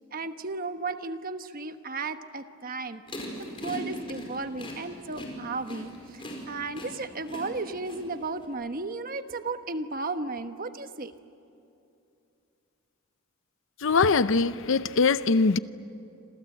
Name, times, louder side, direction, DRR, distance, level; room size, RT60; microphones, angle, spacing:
voice 1, 0.1-11.1, right 3 dB, 40° right, 1.2 m, -35 dB
sound 1, 3.1-8.5, left 1 dB, 25° left, 5.0 m, -39 dB
voice 2, 13.8-15.6, left 4 dB, 60° left, 0.6 m, -22 dB
28.0 x 27.0 x 7.9 m
head